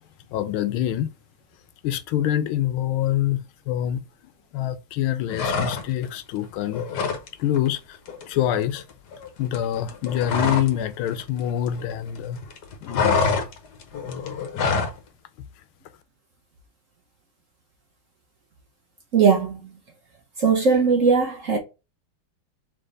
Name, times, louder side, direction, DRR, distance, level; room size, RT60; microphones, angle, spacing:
voice 1, 0.3-1.1 1.8-4.0 4.5-6.9 7.4-8.0 8.3-8.8 9.4-12.4 12.8-13.2, left 11 dB, 90° left, 1.5 m, -25 dB
sound 1, 5.3-6.1 6.4-7.3 7.5-7.8 8.1-10.8 11.1-12.2 12.4-15.0, left 5 dB, 60° left, 1.3 m, -26 dB
voice 2, 19.1-19.8 20.4-21.6, right 5 dB, 55° right, 1.0 m, -19 dB
3.6 x 3.4 x 3.9 m
omnidirectional pair, 2.2 m